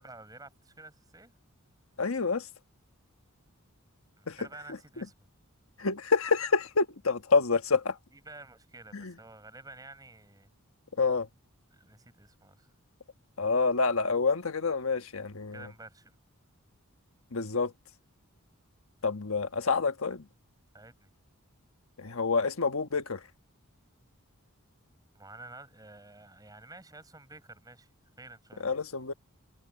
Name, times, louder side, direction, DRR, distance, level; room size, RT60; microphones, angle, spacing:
voice 1, 0.0-1.3 4.2-5.1 8.1-10.5 11.7-12.7 15.5-16.2 20.7-21.1 25.1-27.9 28.2-28.7, right 2 dB, 15° right, 7.6 m, -50 dB
voice 2, 2.0-2.5 4.3-4.4 5.0-5.1 5.8-8.0 8.9-9.1 11.0-11.3 13.4-15.7 17.3-17.7 19.0-20.2 22.0-23.2 28.6-29.1, left 4 dB, 70° left, 1.3 m, -28 dB
head